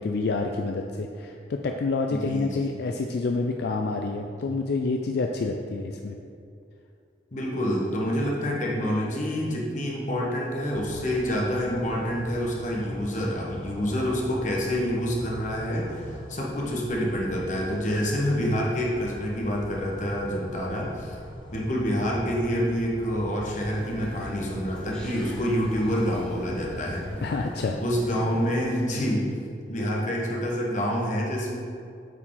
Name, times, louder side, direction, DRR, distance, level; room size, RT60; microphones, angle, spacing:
voice 1, 0.0-6.2 27.2-27.8, left 3 dB, 65° left, 3 dB, 0.4 m, -28 dB
voice 2, 2.1-2.7 7.3-21.2 21.5-27.1 27.8-29.3 29.7-31.6, equal, 45° left, -3 dB, 1.3 m, -27 dB
sound 1, 10.7-27.5, left 1 dB, 25° left, 0.6 m, -42 dB
sound 2, 23.7-28.8, equal, 5° left, 1.6 m, -41 dB
8.1 x 4.6 x 3.8 m, 2.4 s
head